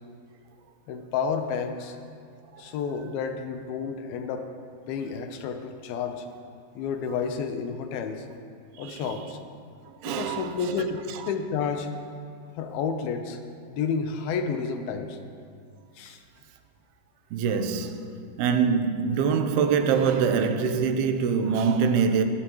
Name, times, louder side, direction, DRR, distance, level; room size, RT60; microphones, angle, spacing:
voice 1, 0.9-2.0 2.6-4.5 4.9-6.3 6.8-8.3 8.8-9.4 10.1-11.9 12.6-13.4 13.7-15.2 16.0-16.2, left 6 dB, 80° left, 2.7 m, -30 dB
voice 2, 8.8-9.2 10.0-10.5 17.3-18.1 18.4-22.2, right 6 dB, 85° right, 2.8 m, -24 dB
22.0 x 14.5 x 3.1 m
omnidirectional pair, 4.4 m